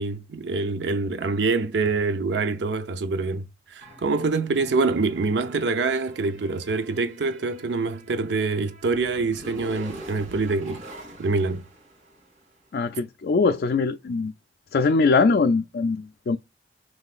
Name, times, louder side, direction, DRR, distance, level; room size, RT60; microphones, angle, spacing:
voice 1, 0.0-3.4 3.7-10.8 11.2-11.6, right 3 dB, 85° right, 0.6 m, -25 dB
sound 1, 3.8-12.5, right 1 dB, 50° right, 2.8 m, -44 dB
voice 2, 12.7-14.3 14.7-16.4, left 4 dB, 60° left, 0.3 m, -22 dB
5.5 x 3.2 x 2.4 m
head